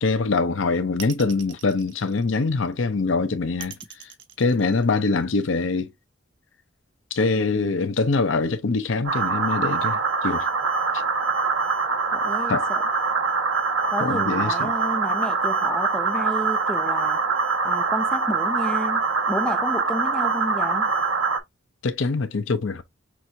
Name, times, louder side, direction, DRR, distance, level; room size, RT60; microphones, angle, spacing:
voice 1, 0.0-4.1 4.4-5.9 7.1-10.5 12.5-12.7 14.0-14.7 21.8-22.8, left 3 dB, 70° left, 0.6 m, -24 dB
sound 1, 1.0-2.7 3.6-5.3, right 8 dB, 65° right, 0.9 m, -41 dB
sound 2, 9.0-21.4, right 4 dB, 85° right, 1.0 m, -24 dB
voice 2, 12.1-12.8 13.9-17.2 17.6-20.9, left 1 dB, 5° left, 0.5 m, -31 dB
6.0 x 2.5 x 2.7 m
head